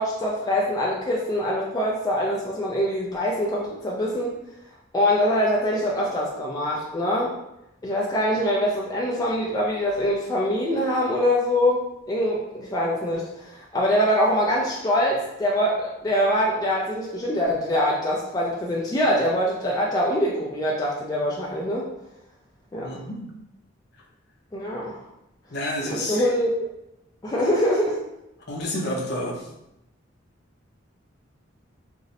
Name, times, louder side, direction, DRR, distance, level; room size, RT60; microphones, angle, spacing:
voice 1, 0.0-4.3 4.9-7.3 7.8-21.9 22.7-23.0 24.5-25.0 25.9-26.5 27.2-28.0, equal, 20° left, -4 dB, 0.3 m, -24 dB
voice 2, 22.8-23.2 25.5-26.3 28.5-29.5, left 1 dB, 55° left, -1 dB, 0.6 m, -29 dB
2.6 x 2.0 x 3.9 m, 0.85 s
head